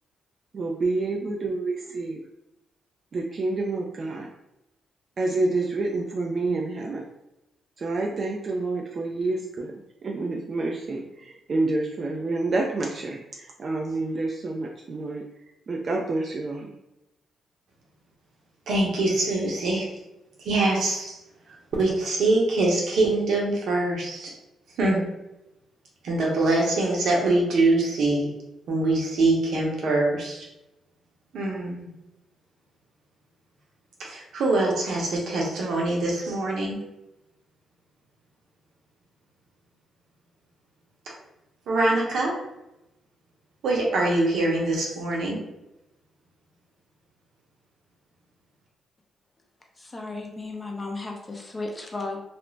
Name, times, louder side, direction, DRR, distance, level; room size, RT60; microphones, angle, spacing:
voice 1, 0.5-2.2 3.1-4.3 5.2-7.1 7.8-15.2 15.7-16.7, right 2 dB, 50° right, 0 dB, 0.3 m, -28 dB
voice 2, 18.7-19.9 20.4-21.2 21.8-24.3 24.8-25.0 26.0-28.3 28.7-30.5 31.3-31.9 34.0-36.8 41.7-42.4 43.6-45.4, right 2 dB, 75° right, -2 dB, 0.8 m, -24 dB
voice 3, 49.8-52.2, left 2 dB, 30° left, 0 dB, 0.6 m, -34 dB
2.4 x 2.1 x 3.1 m, 0.90 s
cardioid pair, 70°, 0 cm